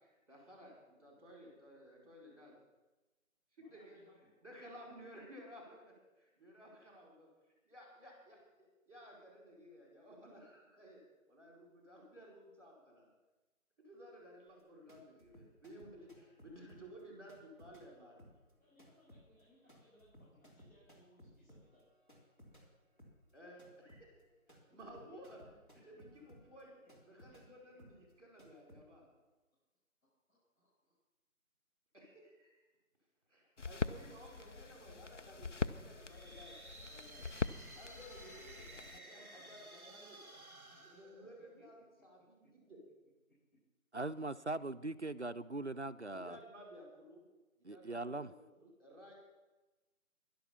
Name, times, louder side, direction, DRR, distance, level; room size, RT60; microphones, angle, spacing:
voice 1, 0.0-2.6 3.5-4.0 4.4-7.3 7.6-11.0 11.3-13.1 13.8-18.2 23.3-24.2 24.5-25.4 25.7-26.8 27.0-29.1 31.9-32.7 33.3-37.3 37.7-40.2 40.8-42.8 46.1-47.2 47.6-49.1, equal, 25° right, 0 dB, 4.5 m, -56 dB
voice 2, 3.6-4.3 18.6-21.8 25.1-25.2 30.3-31.0 34.0-35.5 37.7-40.8 41.6-41.7 42.4-42.5, equal, 75° left, -8 dB, 6.3 m, -67 dB
sound 1, 14.5-22.7 23.0-28.8, equal, 35° left, 3.1 m, -62 dB
sound 2, 33.6-39.0, left 3 dB, 60° left, 0.6 m, -42 dB
sound 3, 35.9-41.8, right 2 dB, ahead, 1.0 m, -55 dB
voice 3, 43.9-46.4 47.6-48.3, right 2 dB, 55° right, 12 dB, 0.4 m, -40 dB
12.0 x 11.5 x 7.1 m, 1.1 s
figure-of-eight pair, 175°, 42 cm